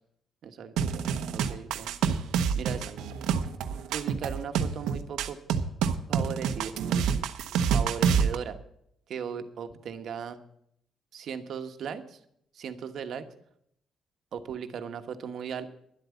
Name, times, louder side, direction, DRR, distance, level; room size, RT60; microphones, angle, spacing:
voice 1, 0.4-1.0 1.3-1.9 2.5-2.9 3.9-5.4 6.1-7.1 7.7-8.6 9.1-10.4 11.1-12.2 12.5-13.3 14.3-15.7, right 7 dB, 65° right, 8 dB, 1.2 m, -37 dB
sound 1, 0.8-8.4, right 7 dB, 90° right, 0.8 m, -27 dB
11.5 x 8.2 x 8.1 m, 0.72 s
cardioid pair, 90°, 0 cm